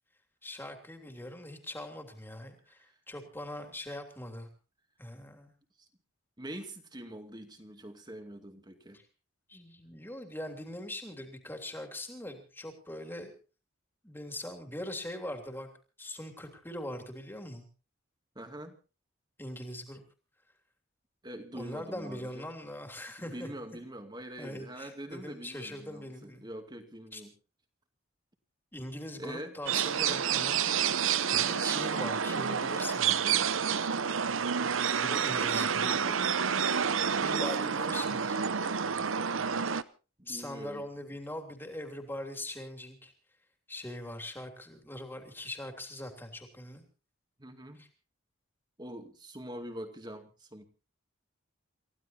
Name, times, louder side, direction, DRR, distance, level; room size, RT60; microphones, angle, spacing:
voice 1, 0.4-4.5 5.0-5.5 8.9-9.0 9.5-13.3 14.0-15.7 16.0-17.7 19.4-20.0 21.5-23.5 24.4-26.4 27.1-27.2 28.7-30.6 31.3-33.5 34.9-35.9 36.2-36.3 37.2-38.4 40.3-43.1 43.7-46.8 47.8-47.9, left 1 dB, 10° left, 5 dB, 3.1 m, -41 dB
voice 2, 6.4-9.0 18.4-18.8 21.2-22.5 23.2-27.3 29.2-29.6 34.7-36.4 37.6-37.7 40.2-40.8 47.4-47.8 48.8-50.6, right 1 dB, 20° right, 6 dB, 2.4 m, -44 dB
sound 1, 29.7-39.8, right 7 dB, 75° right, 0.8 m, -29 dB
29.5 x 15.5 x 2.8 m, 0.35 s
head